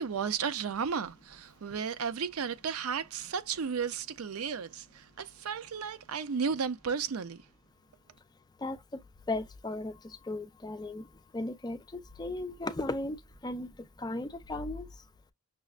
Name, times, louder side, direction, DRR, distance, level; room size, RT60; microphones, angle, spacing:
voice 1, 0.0-7.4, right 6 dB, 85° right, 0.5 m, -34 dB
voice 2, 9.3-9.9 10.3-11.0 11.3-11.8 12.2-13.2 13.4-13.7 14.0-14.9, left 2 dB, 20° left, 0.5 m, -35 dB
6.1 x 2.0 x 2.4 m
head